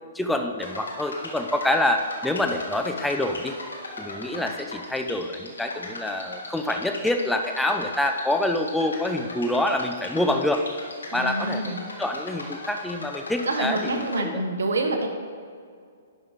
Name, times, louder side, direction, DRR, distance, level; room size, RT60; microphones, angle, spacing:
voice 1, 0.1-3.6 4.0-10.6 11.1-14.4, left 1 dB, 5° left, 4 dB, 0.5 m, -26 dB
sound 1, 0.6-14.2, left 2 dB, 90° left, 1.5 m, -38 dB
voice 2, 11.1-11.8 13.4-15.1, right 2 dB, 80° right, 4 dB, 1.2 m, -27 dB
11.0 x 5.5 x 3.6 m, 2.2 s
hypercardioid pair, 130°, 0 cm